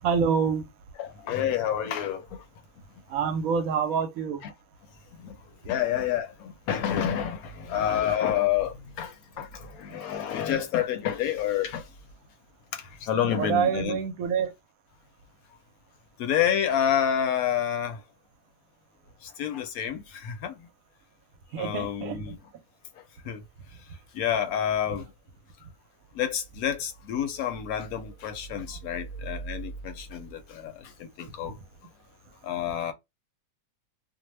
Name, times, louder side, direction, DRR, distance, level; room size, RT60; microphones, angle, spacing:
voice 1, 0.0-0.7 3.1-4.5 9.9-10.0 13.3-14.5 21.5-22.3, right 6 dB, 70° right, 0.9 m, -27 dB
voice 2, 1.0-2.2 4.4-4.5 5.2-5.3 5.7-11.8 13.0-14.0 16.2-18.0 19.4-20.5 21.6-22.4 23.3-23.4 24.1-25.1 26.2-30.7 31.0-31.5 32.4-32.9, left 9 dB, 75° left, 1.0 m, -28 dB
2.7 x 2.0 x 3.0 m
omnidirectional pair, 1.6 m